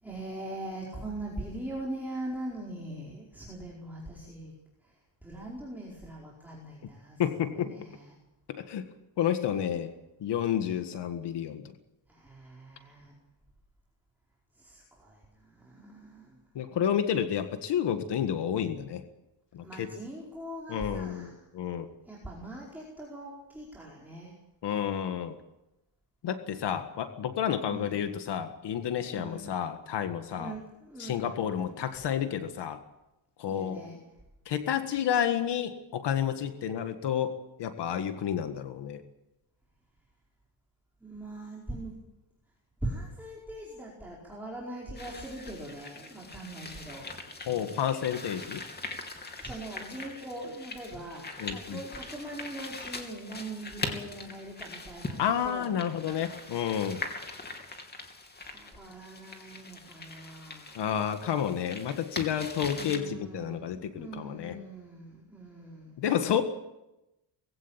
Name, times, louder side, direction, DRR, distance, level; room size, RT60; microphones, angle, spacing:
voice 1, 0.0-4.5 4.8-8.2 12.1-13.1 14.5-16.4 19.6-21.4 22.0-24.4 27.6-28.1 29.1-29.6 30.3-31.8 33.5-34.0 41.0-41.9 42.8-47.2 49.4-55.7 56.1-56.6 58.4-60.8 62.6-66.0, right 1 dB, 5° right, -4 dB, 4.8 m, -42 dB
voice 2, 7.2-7.7 8.5-8.9 9.2-9.9 10.2-11.6 16.6-19.0 19.5-19.9 20.7-21.8 24.6-25.4 26.2-30.5 31.0-32.8 33.4-33.8 34.5-39.0 47.5-48.6 51.4-51.8 55.2-57.0 60.8-64.6 66.0-66.4, left 9 dB, 65° left, 8 dB, 1.8 m, -30 dB
sound 1, 45.0-63.0, left 3 dB, 20° left, 3.0 m, -42 dB
21.0 x 16.5 x 9.0 m, 0.93 s
cardioid pair, 140°, 45 cm